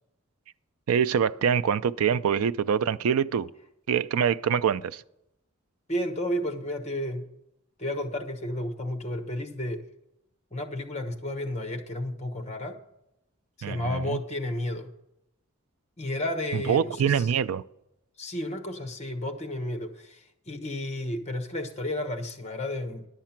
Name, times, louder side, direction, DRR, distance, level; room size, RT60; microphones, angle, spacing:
voice 1, 0.9-3.5 3.9-5.0 13.6-14.2 16.7-17.6, right 7 dB, 85° right, 0.4 m, -25 dB
voice 2, 5.9-7.3 7.8-9.8 10.5-12.8 13.7-14.9 16.0-17.3 18.2-23.1, left 1 dB, 30° left, 1.0 m, -32 dB
11.5 x 7.4 x 5.8 m
head